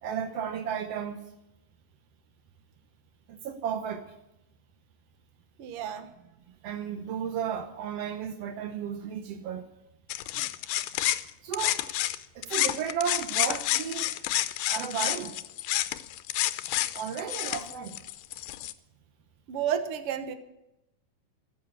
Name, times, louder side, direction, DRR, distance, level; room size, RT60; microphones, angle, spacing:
voice 1, 0.0-1.2 3.3-4.1 6.6-9.7 11.4-11.8 12.3-14.1 14.7-15.3 16.9-18.0, right 8 dB, 85° right, 8 dB, 1.4 m, -33 dB
voice 2, 5.6-6.1 10.3-10.5 19.5-20.3, right 9 dB, 70° right, 10 dB, 1.4 m, -32 dB
sound 1, 10.1-12.2 12.4-18.7, left 15 dB, 80° left, 2.1 m, -29 dB
14.0 x 8.5 x 8.9 m, 0.88 s
omnidirectional pair, 4.0 m